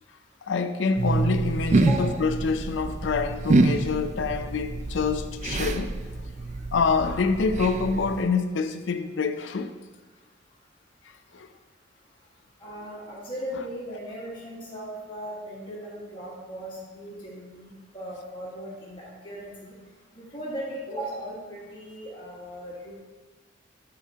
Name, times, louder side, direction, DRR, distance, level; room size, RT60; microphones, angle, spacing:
voice 1, 0.5-6.0 6.7-9.7 11.3-11.5, left 4 dB, 80° left, 0.5 m, -26 dB
sound 1, 1.0-8.3, right 2 dB, 40° right, 0.4 m, -26 dB
voice 2, 1.8-2.2 12.6-19.7 20.1-23.0, right 1 dB, 25° left, 1.6 m, -37 dB
11.5 x 4.3 x 2.8 m
head